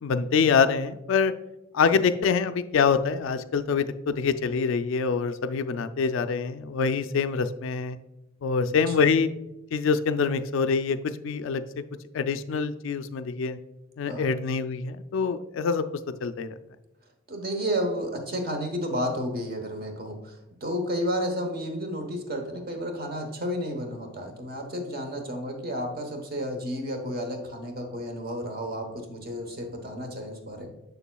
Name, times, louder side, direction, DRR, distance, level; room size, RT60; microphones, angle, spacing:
voice 1, 0.0-1.3 1.7-8.0 8.4-9.3 9.7-11.6 12.1-13.6 14.0-15.8 16.2-16.5, left 5 dB, 65° left, 11 dB, 0.3 m, -25 dB
voice 2, 8.7-9.1 14.1-14.3 17.3-30.7, equal, 45° right, 4 dB, 1.0 m, -32 dB
6.9 x 6.7 x 2.3 m, 0.95 s
head